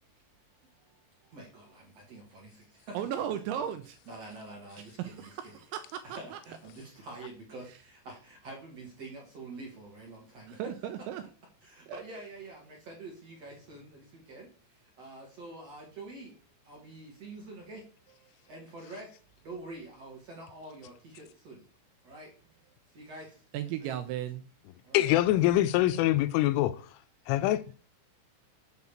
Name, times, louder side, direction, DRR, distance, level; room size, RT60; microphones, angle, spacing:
voice 1, 1.3-3.0 4.1-5.3 6.0-10.6 11.6-16.4 16.6-17.9 18.3-21.6 22.0-22.4 22.9-23.4 23.8-23.9 24.8-25.4, right 2 dB, 50° right, 2.1 m, -46 dB
voice 2, 2.9-4.0 4.8-5.8 6.1-6.4 7.7-7.8 10.5-11.2 11.9-12.0 23.5-24.4, right 10 dB, 85° right, 2.8 m, -36 dB
voice 3, 24.9-26.8 27.3-27.8, left 14 dB, 85° left, 3.0 m, -24 dB
8.3 x 4.2 x 7.1 m
omnidirectional pair, 5.8 m